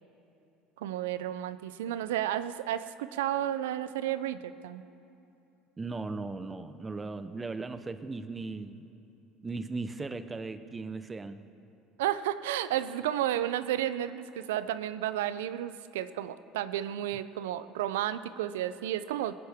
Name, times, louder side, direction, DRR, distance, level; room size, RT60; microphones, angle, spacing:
voice 1, 0.8-4.8 12.0-19.3, right 12 dB, 85° right, 13 dB, 0.4 m, -32 dB
voice 2, 5.8-8.9 9.4-11.4, right 3 dB, 20° right, 11 dB, 0.7 m, -37 dB
20.0 x 9.6 x 3.6 m, 2.8 s
supercardioid pair, 85°, 0 cm